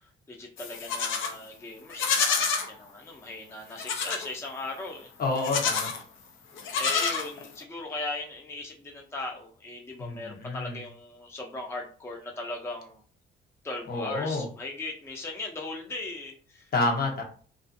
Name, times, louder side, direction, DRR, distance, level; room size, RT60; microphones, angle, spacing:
voice 1, 0.0-5.1 6.7-13.0 13.6-16.7, left 2 dB, 15° left, 1 dB, 0.5 m, -38 dB
Livestock farm animals working animals, 0.6-1.4 1.9-2.7 3.8-4.3 5.4-6.0 6.6-7.6, left 5 dB, 80° left, 0.6 m, -28 dB
voice 2, 5.2-5.9 10.0-10.8 13.9-14.5 16.7-17.2, left 3 dB, 50° left, 1 dB, 0.8 m, -28 dB
2.4 x 2.3 x 2.5 m, 0.43 s
cardioid pair, 90°, 20 cm